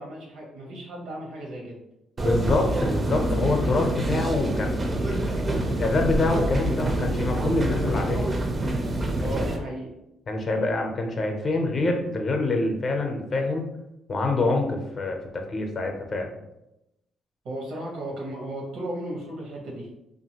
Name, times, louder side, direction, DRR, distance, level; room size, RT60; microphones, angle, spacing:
voice 1, 0.0-1.8 9.2-9.9 17.4-19.9, right 1 dB, 85° right, -1 dB, 0.9 m, -35 dB
voice 2, 2.2-8.3 10.3-13.7 14.1-16.3, left 2 dB, 45° left, 3 dB, 0.6 m, -26 dB
sound 1, 2.2-9.6, right 1 dB, 30° right, 0.4 m, -26 dB
2.7 x 2.5 x 2.8 m, 0.88 s
cardioid pair, 90°, 0 cm